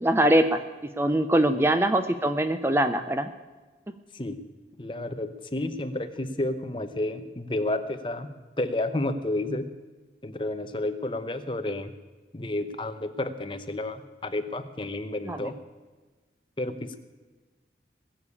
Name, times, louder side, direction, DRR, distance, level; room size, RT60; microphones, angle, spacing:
voice 1, 0.0-0.6 1.0-3.3 15.3-15.5, right 1 dB, 15° right, 9 dB, 0.5 m, -22 dB
voice 2, 4.8-8.3 8.6-9.7 10.2-11.9 12.3-15.5 16.6-17.0, left 1 dB, 30° left, 9 dB, 0.9 m, -31 dB
20.5 x 7.0 x 8.5 m, 1.3 s
head